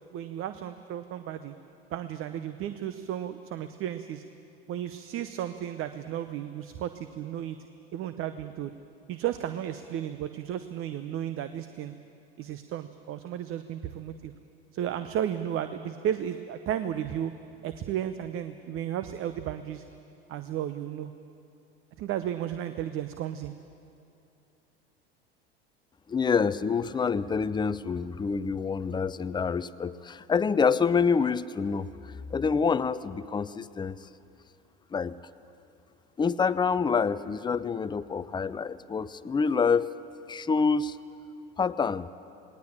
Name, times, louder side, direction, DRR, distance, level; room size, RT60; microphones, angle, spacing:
voice 1, 0.1-1.5 1.9-4.2 4.7-7.6 7.9-8.7 9.1-11.9 12.4-14.3 14.7-17.3 17.6-19.8 20.3-21.1 22.0-23.5, right 10 dB, 45° right, 11 dB, 0.9 m, -34 dB
voice 2, 26.1-31.9 32.3-34.0 34.9-35.1 36.2-39.9 40.3-41.0 41.6-42.1, left 5 dB, 15° left, 14 dB, 0.6 m, -27 dB
19.0 x 19.0 x 8.7 m, 2.7 s
hypercardioid pair, 80°, 31 cm